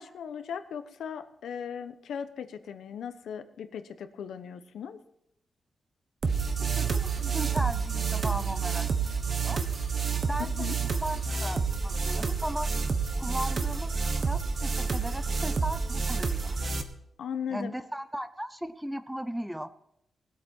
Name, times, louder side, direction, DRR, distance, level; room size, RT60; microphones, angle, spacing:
voice 1, 0.0-5.0 10.4-10.8 17.2-17.7, left 7 dB, 90° left, 10 dB, 1.0 m, -38 dB
sound 1, 6.2-16.8, right 5 dB, 40° right, 1.1 m, -29 dB
voice 2, 6.8-8.9 9.4-9.6 10.3-12.7 13.2-13.9 14.2-16.6 17.5-19.7, equal, 5° right, 11 dB, 0.6 m, -36 dB
19.5 x 8.5 x 4.4 m, 0.76 s
wide cardioid pair, 155°, 0 cm